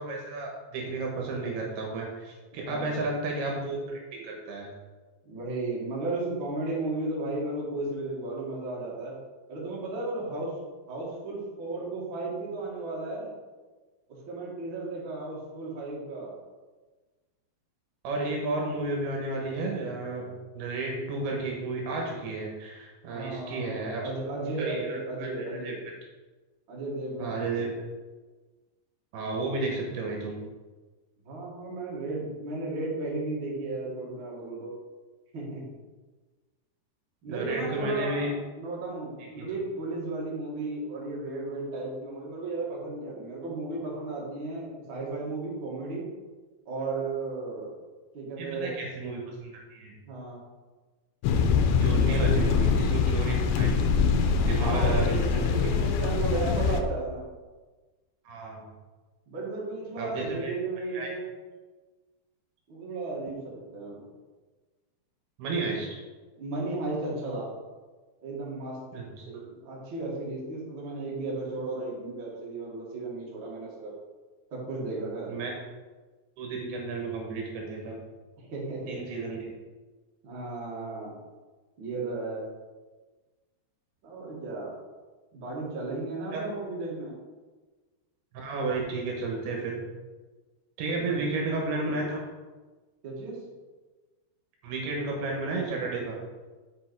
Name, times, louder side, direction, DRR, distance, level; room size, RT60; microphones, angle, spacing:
voice 1, 0.0-4.7 18.0-24.1 24.6-25.7 27.2-27.7 29.1-30.4 37.3-38.3 39.4-39.5 48.4-49.9 51.8-53.9 54.4-55.7 58.3-58.6 60.0-60.5 60.9-61.1 65.4-65.9 68.9-69.3 75.3-75.5 76.4-78.0 78.9-79.5 86.3-86.5 88.3-89.8 90.8-92.2 94.6-96.2, right 3 dB, 70° right, -1 dB, 3.0 m, -32 dB
voice 2, 2.6-3.1 5.2-9.1 9.5-10.5 10.9-13.3 14.1-16.3 23.1-25.8 26.7-27.7 31.2-34.7 35.3-35.7 37.2-46.1 46.6-47.7 48.1-48.7 50.1-50.4 52.0-52.2 54.5-57.2 59.3-61.3 62.7-64.0 66.3-67.5 68.2-68.8 69.3-73.9 74.5-75.3 78.4-79.0 80.2-81.2 81.8-82.4 84.0-84.7 85.3-87.1 90.9-91.3 93.0-93.4, right 2 dB, 40° right, -5 dB, 1.8 m, -34 dB
sound 1, 51.2-56.8, left 5 dB, 90° left, 3.0 m, -24 dB
8.7 x 5.3 x 4.7 m, 1.3 s
omnidirectional pair, 5.1 m